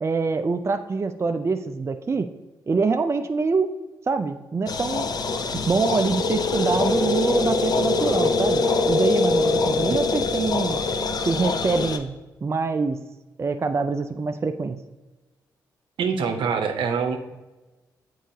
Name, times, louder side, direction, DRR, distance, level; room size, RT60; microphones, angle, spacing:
voice 1, 0.0-2.3 2.7-3.7 4.1-5.1 5.5-10.8 11.2-12.1 12.4-13.0 13.4-14.8, right 4 dB, 30° right, 7 dB, 0.4 m, -25 dB
sound 1, 4.7-12.0, left 3 dB, 50° left, 0.6 m, -23 dB
voice 2, 16.0-17.2, right 6 dB, 75° right, 5 dB, 0.7 m, -24 dB
7.4 x 4.6 x 2.8 m, 1.1 s
supercardioid pair, 50°, 9 cm